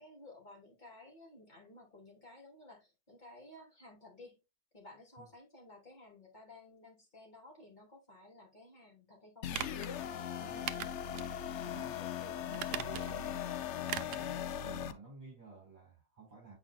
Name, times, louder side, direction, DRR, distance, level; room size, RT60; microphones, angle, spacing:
voice 1, 0.0-4.4 4.7-9.8, left 2 dB, 25° left, 2.9 m, -55 dB
sound 1, 9.4-14.9, left 9 dB, 70° left, 0.7 m, -39 dB
sound 2, 9.5-9.9 10.7-11.3 11.7-11.8 12.5-13.3 13.9-14.3 14.6-14.7, right 12 dB, 80° right, 1.1 m, -40 dB
voice 2, 10.4-10.8 11.1-16.6, right 3 dB, 25° right, 4.4 m, -53 dB
8.4 x 5.0 x 2.3 m
omnidirectional pair, 1.7 m